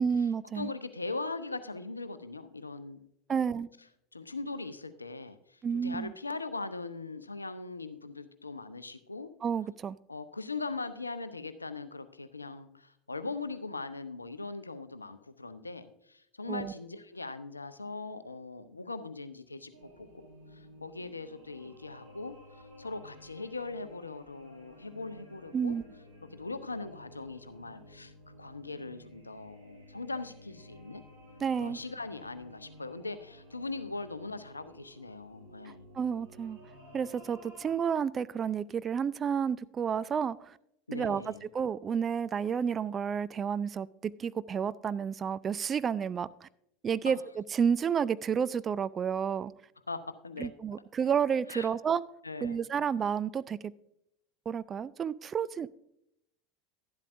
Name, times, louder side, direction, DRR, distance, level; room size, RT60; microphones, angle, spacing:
voice 1, 0.0-0.7 3.3-3.7 5.6-6.1 9.4-10.0 16.5-16.7 25.5-25.8 31.4-31.8 35.7-36.6 36.9-40.6 40.9-46.5 46.8-49.5 50.4-52.0 52.4-53.7 54.5-55.7, right 7 dB, 25° right, 16 dB, 0.3 m, -31 dB
voice 2, 0.6-3.0 3.3-3.5 4.1-5.4 5.7-9.3 10.1-20.3 20.5-22.4 22.8-25.7 26.3-31.0 31.6-35.9 40.9-41.4 49.9-50.5 51.5-51.7 52.2-52.6, left 3 dB, 85° left, 12 dB, 0.6 m, -40 dB
sound 1, 19.7-37.7, equal, 90° right, 4.4 m, -54 dB
11.5 x 11.5 x 2.5 m, 0.78 s
figure-of-eight pair, 80°, 0 cm